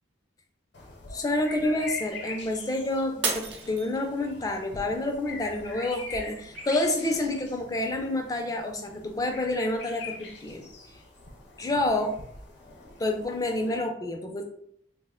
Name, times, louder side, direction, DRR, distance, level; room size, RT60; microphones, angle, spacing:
sound 1, 0.7-13.8, left 3 dB, 60° left, 0.7 m, -44 dB
voice 1, 1.1-10.7 11.6-12.1 13.0-14.4, left 2 dB, 20° left, 4 dB, 0.3 m, -28 dB
Shatter, 3.2-4.5 5.0-5.5 6.0-6.1, right 4 dB, 85° right, 0.6 m, -32 dB
2.8 x 2.1 x 3.5 m, 0.70 s
head